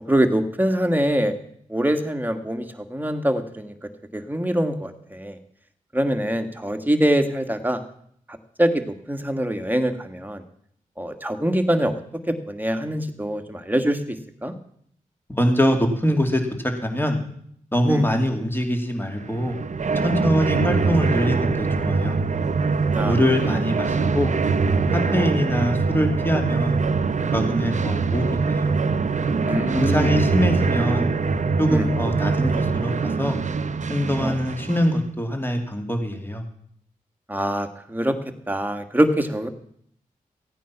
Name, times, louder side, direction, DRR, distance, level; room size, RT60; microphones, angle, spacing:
voice 1, 0.1-1.3 1.7-3.7 4.1-5.4 5.9-7.8 8.3-8.8 9.1-10.4 11.0-12.0 12.3-14.2 14.4-14.5 17.9-18.0 22.9-23.2 25.1-25.3 29.4-30.1 31.7-31.9 34.2-34.3 37.3-38.2 38.5-39.5, right 1 dB, 10° right, 6 dB, 1.9 m, -24 dB
voice 2, 15.3-16.4 16.8-17.2 17.7-19.6 20.0-22.2 23.0-24.3 25.1-26.8 27.3-28.8 29.7-31.1 31.6-33.4 33.9-36.4, equal, 15° left, 4 dB, 2.8 m, -23 dB
sound 1, 19.2-35.0, right 4 dB, 55° right, 0.9 m, -23 dB
15.0 x 9.2 x 5.9 m, 0.67 s
cardioid pair, 45°, 14 cm